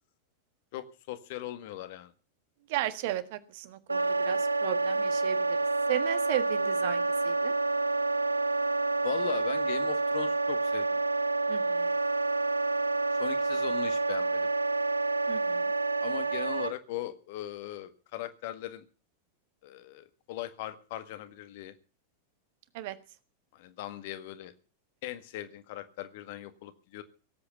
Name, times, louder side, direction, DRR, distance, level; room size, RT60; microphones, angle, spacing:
voice 1, 0.7-2.1 9.0-11.0 13.2-14.5 16.0-18.8 19.6-21.7 23.5-24.5 25.0-27.0, left 14 dB, 50° left, 10 dB, 1.7 m, -39 dB
voice 2, 2.7-5.6 5.9-7.5 11.5-11.9 15.3-15.7 22.7-23.0, right 14 dB, 50° right, 12 dB, 1.5 m, -35 dB
Wind instrument woodwind instrument, 3.9-16.7, right 3 dB, 80° right, 0.7 m, -28 dB
18.0 x 8.6 x 8.2 m, 0.38 s
figure-of-eight pair, 90°, 0 cm